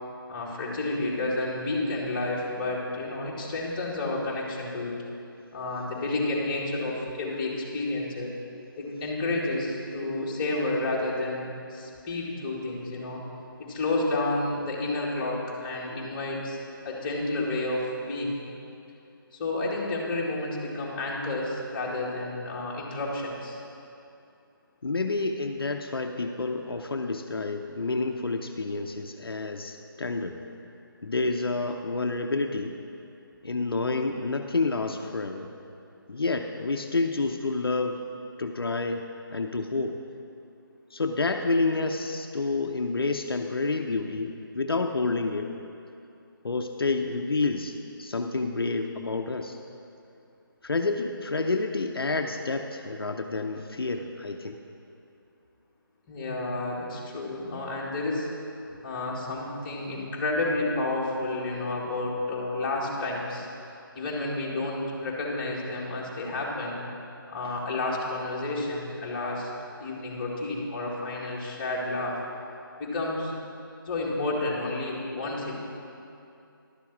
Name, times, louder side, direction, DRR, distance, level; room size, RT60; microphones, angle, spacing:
voice 1, 0.3-4.9 5.5-8.3 8.8-13.2 13.6-18.4 19.3-23.6 56.1-58.3 58.8-63.5 63.9-66.8 67.3-69.5 69.8-72.2 72.8-73.3 73.9-75.6, left 2 dB, 25° left, -5 dB, 2.0 m, -30 dB
voice 2, 24.8-30.4 31.0-32.8 33.4-35.5 36.1-38.0 38.4-39.1 39.3-40.0 40.9-45.5 46.4-49.6 50.6-54.6, left 3 dB, 80° left, 4 dB, 0.7 m, -29 dB
11.5 x 7.0 x 6.0 m, 2.6 s
figure-of-eight pair, 160°, 12 cm